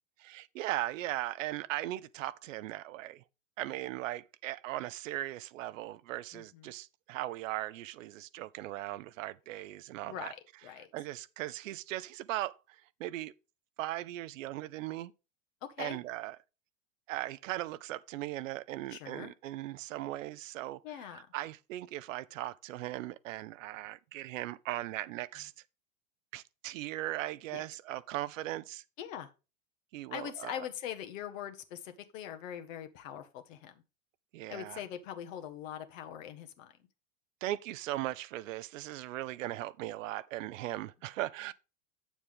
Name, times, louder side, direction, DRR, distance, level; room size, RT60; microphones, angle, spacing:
voice 1, 0.2-3.2 3.6-10.3 10.9-12.6 13.0-13.3 13.8-15.1 15.8-16.4 17.1-25.5 26.3-28.8 29.9-30.7 34.3-34.8 37.4-41.5, right 15 dB, 65° right, 0.7 m, -38 dB
voice 2, 6.3-6.7 10.0-10.9 15.6-16.0 18.9-19.3 20.8-21.3 27.5-27.6 29.0-29.3 30.1-33.8 34.5-36.7 40.7-40.8, left 10 dB, 65° left, 1.5 m, -42 dB
8.7 x 7.2 x 3.6 m
hypercardioid pair, 90°, 42 cm